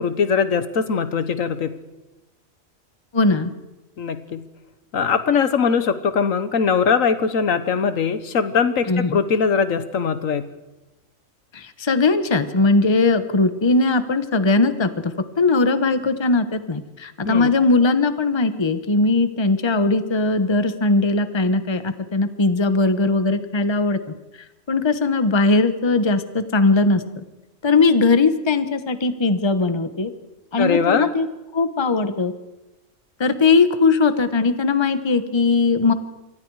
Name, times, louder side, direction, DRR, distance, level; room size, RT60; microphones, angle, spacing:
voice 1, 0.0-1.7 4.0-4.4 4.9-10.4 17.2-17.5 30.6-31.1, left 6 dB, 75° left, 11 dB, 1.5 m, -21 dB
voice 2, 3.1-3.5 8.9-9.2 11.5-24.0 24.7-27.2 27.6-30.1 30.5-31.3 31.5-32.3 33.2-35.9, left 3 dB, 20° left, 10 dB, 1.0 m, -19 dB
27.0 x 23.0 x 4.8 m, 1.0 s
omnidirectional pair, 1.4 m